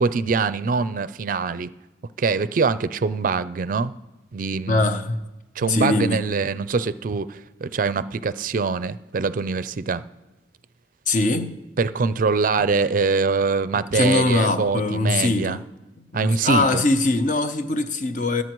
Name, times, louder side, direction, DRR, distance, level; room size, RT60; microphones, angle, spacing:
voice 1, 0.0-1.7 2.2-3.9 4.3-4.9 5.6-10.0 11.8-15.6 16.1-16.8, right 4 dB, 50° right, 0.4 m, -23 dB
voice 2, 4.7-5.2 5.6-6.2 11.1-11.5 13.9-15.6 16.1-18.4, left 2 dB, 45° left, 0.7 m, -22 dB
23.0 x 8.2 x 3.1 m
head